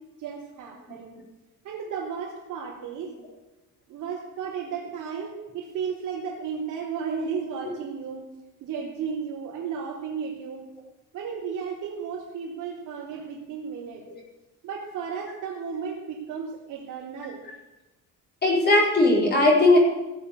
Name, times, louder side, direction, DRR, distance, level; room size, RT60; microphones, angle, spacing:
voice 1, 0.2-1.1 1.6-3.1 3.9-8.3 8.6-10.6 11.1-14.0 14.6-17.4, right 6 dB, 65° right, -5 dB, 3.5 m, -34 dB
voice 2, 18.4-19.8, left 2 dB, 30° left, -3 dB, 4.6 m, -18 dB
17.5 x 7.1 x 8.5 m, 1.1 s
cardioid pair, 170°, 32 cm